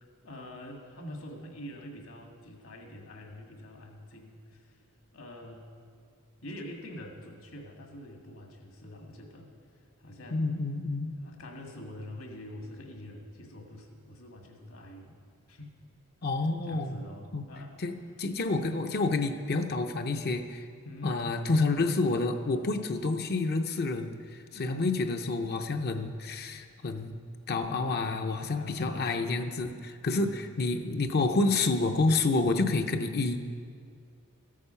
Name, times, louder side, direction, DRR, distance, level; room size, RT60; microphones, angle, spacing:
voice 1, 0.0-4.8 5.1-5.7 6.4-10.6 11.0-15.2 15.5-15.7 16.4-17.7 20.8-21.3 24.5-25.0 27.9-28.3 28.5-29.1 30.1-30.7, left 1 dB, 70° left, 2 dB, 1.8 m, -45 dB
voice 2, 10.3-11.1 16.2-17.0 17.3-17.4 17.8-20.7 21.0-27.2 27.5-30.3 30.6-33.5, left 3 dB, 50° left, 6 dB, 0.7 m, -29 dB
14.5 x 8.5 x 5.6 m, 2.2 s
head